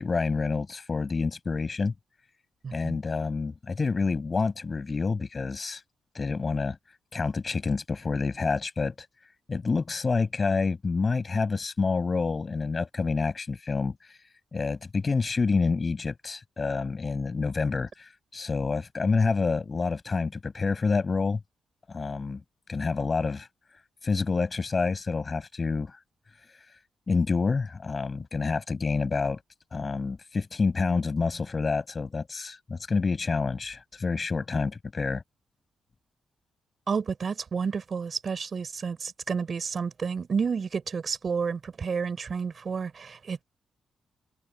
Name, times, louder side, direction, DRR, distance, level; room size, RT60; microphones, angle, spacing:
voice 1, 0.0-1.9 2.7-5.8 6.1-6.8 7.1-9.1 9.5-14.2 14.5-21.4 21.9-22.4 22.7-23.5 24.0-26.0 27.1-29.4 29.7-35.2, left 4 dB, 35° left, 7.9 m, -28 dB
voice 2, 2.6-3.0 36.9-43.4, right 5 dB, 45° right, 4.7 m, -30 dB
cardioid pair, 105°, 0 cm